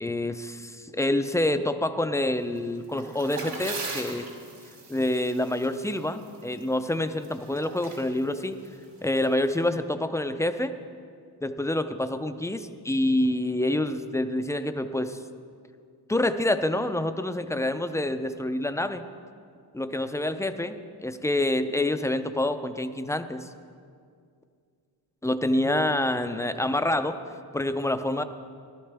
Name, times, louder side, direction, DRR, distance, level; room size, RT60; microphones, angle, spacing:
voice 1, 0.0-4.3 4.9-8.6 9.0-10.7 11.4-15.2 16.1-19.0 19.7-23.5 25.2-27.2 27.5-28.2, left 1 dB, 10° left, 9 dB, 0.3 m, -27 dB
sound 1, 2.6-9.7, right 3 dB, 85° right, 2.8 m, -41 dB
17.5 x 12.5 x 3.4 m, 2.3 s
wide cardioid pair, 155°, 40 cm